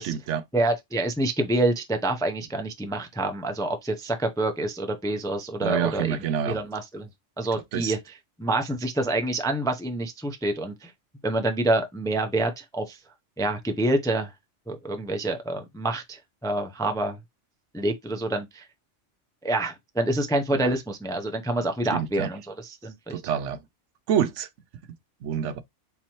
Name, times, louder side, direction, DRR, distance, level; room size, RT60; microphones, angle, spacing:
voice 1, 0.0-0.4 5.6-6.6 7.7-7.9 20.5-20.7 21.9-22.3 23.1-23.6 24.1-24.5 25.2-25.6, right 8 dB, 80° right, 0.9 m, -27 dB
voice 2, 0.5-6.2 6.5-7.1 7.4-8.0 8.4-10.9 11.2-13.0 13.4-14.3 14.7-17.2 17.7-18.6 19.4-23.2, right 2 dB, 5° left, 0.4 m, -27 dB
3.6 x 3.0 x 4.3 m
omnidirectional pair, 1.3 m